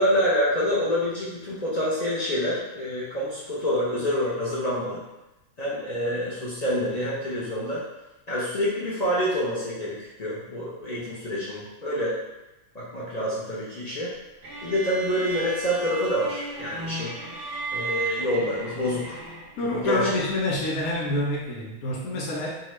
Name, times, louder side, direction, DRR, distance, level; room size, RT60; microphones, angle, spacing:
voice 1, 0.0-5.0 5.6-7.8 8.3-12.2 12.7-14.1 14.6-17.1 17.7-19.2 19.6-20.2, equal, 60° left, -8 dB, 0.4 m, -27 dB
sound 1, 14.4-19.7, right 3 dB, 50° right, 0.7 m, -34 dB
voice 2, 19.6-22.6, left 1 dB, 85° left, -5 dB, 1.1 m, -27 dB
2.8 x 2.2 x 3.1 m, 0.96 s
omnidirectional pair, 1.5 m